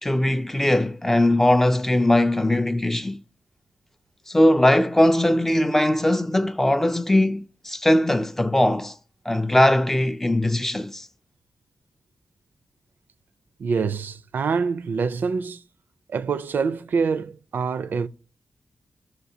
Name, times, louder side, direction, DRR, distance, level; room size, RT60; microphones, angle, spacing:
voice 1, 0.0-3.2 4.3-8.9 9.3-11.1, left 1 dB, 10° left, 0.3 m, -20 dB
voice 2, 13.6-15.6 16.1-18.1, right 5 dB, 65° right, 0.4 m, -25 dB
14.0 x 6.3 x 2.7 m
wide cardioid pair, 150°, 3 cm